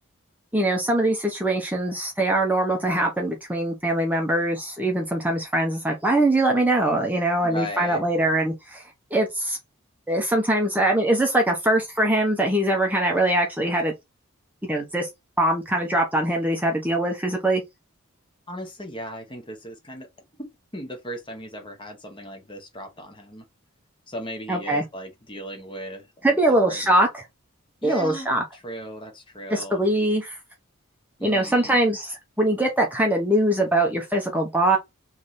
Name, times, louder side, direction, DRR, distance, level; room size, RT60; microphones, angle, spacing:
voice 1, 0.5-9.6 10.1-13.9 14.6-15.1 15.4-17.6 24.5-24.8 26.2-27.2 27.8-28.4 29.5-30.4 31.2-34.8, right 1 dB, 10° right, 0.7 m, -22 dB
voice 2, 7.4-8.0 18.5-20.1 20.4-23.4 24.1-26.8 27.8-29.9 31.2-31.8, equal, 20° left, 1.1 m, -37 dB
3.4 x 3.2 x 4.0 m
head